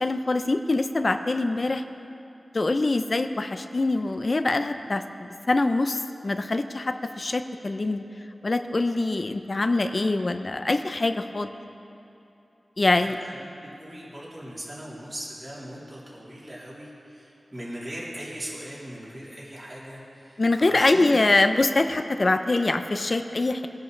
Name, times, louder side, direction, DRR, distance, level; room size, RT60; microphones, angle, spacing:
voice 1, 0.0-1.8 2.5-5.0 5.5-8.0 8.4-11.5 12.8-13.2 20.4-23.7, left 2 dB, 45° left, 8 dB, 0.5 m, -24 dB
voice 2, 13.0-21.2, equal, 30° right, -8 dB, 3.5 m, -39 dB
22.0 x 10.5 x 3.3 m, 2.8 s
wide cardioid pair, 100°, 0 cm